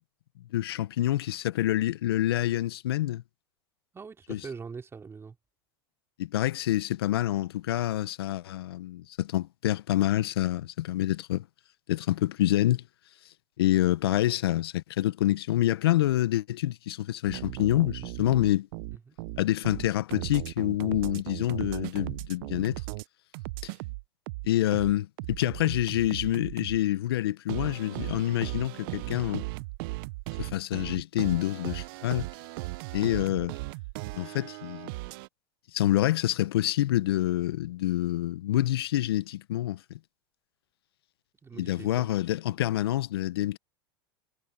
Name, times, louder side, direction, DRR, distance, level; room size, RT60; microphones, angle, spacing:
voice 1, 0.5-3.2 4.3-4.4 6.2-11.4 11.9-12.8 13.6-18.7 19.4-22.8 24.4-29.4 30.4-32.3 32.9-33.5 34.1-34.9 35.7-39.8 41.6-43.6, left 14 dB, 80° left, 1.1 m, -27 dB
voice 2, 3.9-5.4 18.9-19.2 41.4-42.1, right 5 dB, 20° right, 3.5 m, -42 dB
sound 1, 17.3-23.0 23.3-26.8 27.5-35.3, right 23 dB, 60° right, 0.7 m, -37 dB
hypercardioid pair, 95°, 13 cm